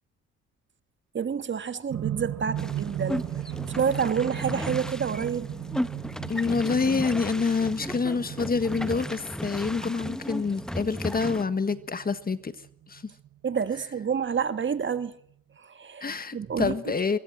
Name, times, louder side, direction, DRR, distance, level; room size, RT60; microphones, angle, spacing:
voice 1, 1.1-3.2 3.7-5.5 13.4-15.1 15.6-16.7, right 7 dB, 40° right, 1.6 m, -28 dB
sound 1, 1.9-14.0 15.0-15.1, right 12 dB, 60° right, 1.0 m, -37 dB
sound 2, 2.6-11.4, equal, ahead, 1.2 m, -35 dB
voice 2, 6.3-12.5 12.9-13.0 16.0-17.2, left 4 dB, 30° left, 1.5 m, -27 dB
24.0 x 23.0 x 7.9 m
cardioid pair, 90°, 30 cm